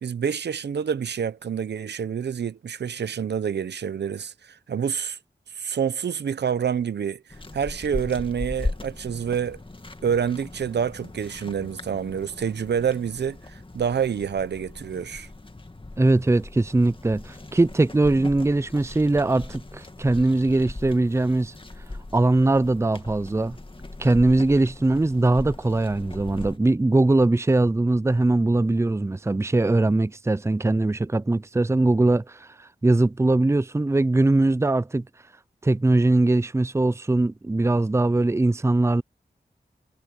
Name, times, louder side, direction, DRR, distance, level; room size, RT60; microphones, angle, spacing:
voice 1, 0.0-5.2 5.5-7.2 7.5-9.6 10.0-15.3, right 7 dB, 85° right, 0.8 m, -27 dB
sound 1, 7.3-26.6, left 2 dB, 30° left, 2.2 m, -39 dB
voice 2, 16.0-21.5 22.1-23.6 24.0-35.0 35.6-39.0, right 2 dB, 15° right, 0.5 m, -21 dB
cardioid pair, 40°, 17 cm